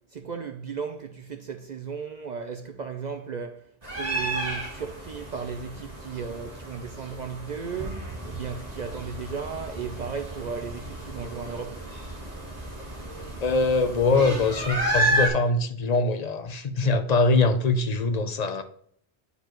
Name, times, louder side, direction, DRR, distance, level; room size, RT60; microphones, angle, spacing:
voice 1, 0.1-11.9, right 6 dB, 55° right, 0.5 m, -35 dB
sound 1, 3.8-15.3, right 1 dB, 40° right, 1.4 m, -32 dB
voice 2, 13.4-18.6, left 3 dB, 45° left, 0.6 m, -23 dB
9.5 x 4.6 x 3.0 m
omnidirectional pair, 1.1 m